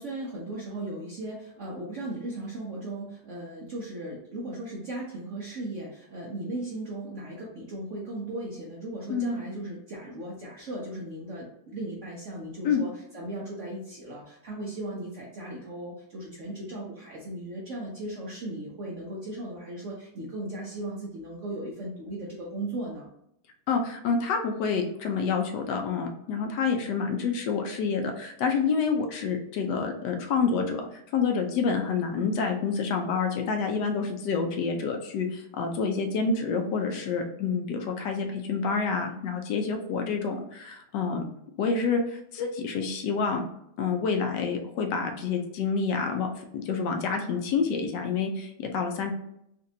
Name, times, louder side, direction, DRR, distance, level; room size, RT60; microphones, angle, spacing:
voice 1, 0.0-23.1, right 1 dB, 80° right, -4 dB, 0.6 m, -37 dB
voice 2, 23.7-41.2 41.6-43.4 43.8-49.1, left 5 dB, 75° left, 4 dB, 1.0 m, -28 dB
4.0 x 2.5 x 2.6 m, 0.75 s
omnidirectional pair, 2.2 m